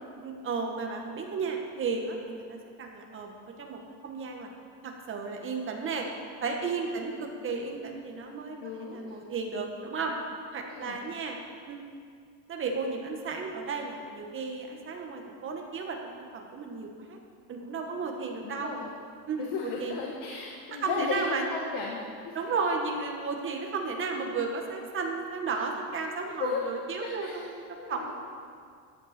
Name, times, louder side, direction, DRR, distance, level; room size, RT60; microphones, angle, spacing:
voice 1, 0.2-3.3 3.6-4.5 4.8-6.1 6.4-10.1 10.5-11.4 11.7-11.8 12.5-17.2 17.5-18.7 19.3-19.5 19.8-20.0 20.7-21.4 22.3-27.6 27.9-28.1, right 4 dB, 35° right, 2 dB, 1.6 m, -33 dB
voice 2, 8.6-9.2 10.7-11.0 18.4-18.9 19.4-22.5 26.4-26.6 27.0-27.5 27.8-28.1, left 5 dB, 80° left, -1 dB, 1.6 m, -35 dB
14.0 x 10.5 x 4.5 m, 2.2 s
cardioid pair, 155°, 34 cm